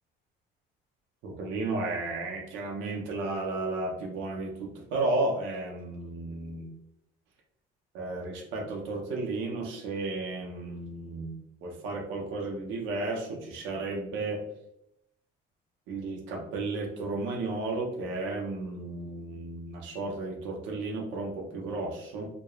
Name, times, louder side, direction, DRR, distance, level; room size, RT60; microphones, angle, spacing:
voice 1, 1.2-6.7 7.9-14.4 15.9-22.3, right 2 dB, 85° right, 0 dB, 0.6 m, -33 dB
3.0 x 2.2 x 2.3 m, 0.79 s
cardioid pair, 105°, 20 cm